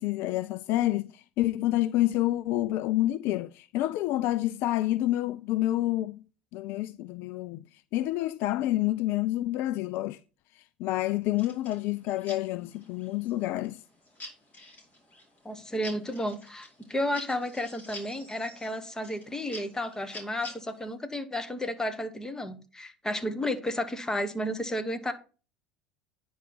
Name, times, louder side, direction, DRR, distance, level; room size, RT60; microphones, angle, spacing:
voice 1, 0.0-6.2 6.5-7.6 7.9-10.2 10.8-13.8, left 15 dB, 50° left, 0.4 m, -28 dB
sound 1, 11.4-20.9, left 1 dB, 30° left, 5.0 m, -49 dB
voice 2, 15.4-25.1, left 1 dB, 10° left, 1.5 m, -32 dB
9.8 x 5.4 x 6.1 m
figure-of-eight pair, 70°, 5 cm